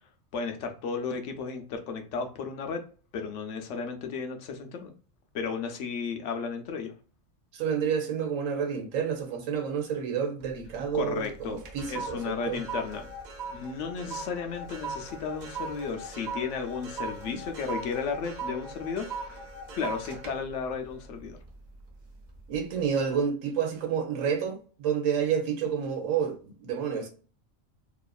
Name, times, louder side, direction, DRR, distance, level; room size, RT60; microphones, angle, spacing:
voice 1, 0.3-2.8 3.1-4.9 5.3-6.9 10.9-11.6 11.9-13.1 13.5-19.4 19.7-21.4, left 5 dB, 70° left, 0.9 m, -34 dB
voice 2, 7.5-12.6 17.3-17.4 22.5-27.1, right 7 dB, 90° right, 1.1 m, -29 dB
sound 1, 10.4-10.9 11.2-21.8 22.3-22.6, right 3 dB, 50° right, 0.6 m, -39 dB
2.9 x 2.4 x 2.3 m
omnidirectional pair, 1.3 m